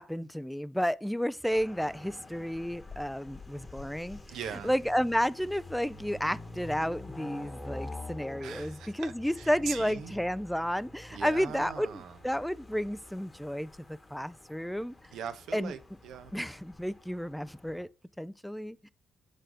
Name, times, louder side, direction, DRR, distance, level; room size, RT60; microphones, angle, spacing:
voice 1, 0.0-4.2 4.6-14.9 15.5-15.7 16.3-17.9 18.2-18.9, equal, ahead, 0.3 m, -32 dB
sound 1, 1.5-17.8, left 2 dB, 20° left, 1.1 m, -47 dB
voice 2, 4.3-4.7 8.4-10.2 11.1-12.2 15.1-16.3, right 8 dB, 80° right, 0.8 m, -41 dB
6.6 x 3.9 x 4.9 m
cardioid pair, 90°, 0 cm